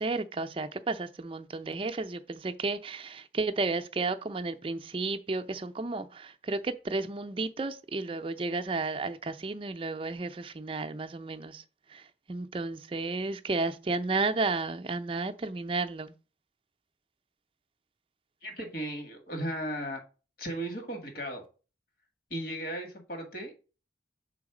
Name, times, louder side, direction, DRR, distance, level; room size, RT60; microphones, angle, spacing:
voice 1, 0.0-11.6 11.9-16.1, right 3 dB, 30° right, 0.4 m, -32 dB
voice 2, 18.4-20.0 20.4-21.4 22.3-23.5, right 1 dB, 50° left, 1.6 m, -36 dB
6.2 x 3.9 x 4.9 m
head